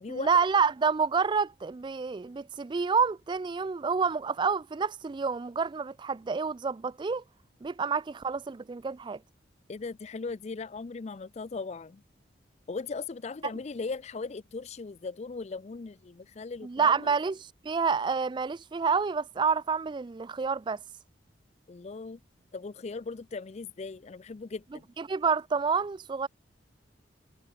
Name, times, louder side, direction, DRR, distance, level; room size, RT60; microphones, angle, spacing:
voice 1, 0.1-7.2 7.6-9.2 16.6-20.8 25.0-26.3, right 5 dB, 25° right, 0.3 m, -28 dB
voice 2, 9.7-12.0 12.7-17.1 21.7-22.2 22.5-24.9, left 4 dB, 40° left, 0.4 m, -38 dB
head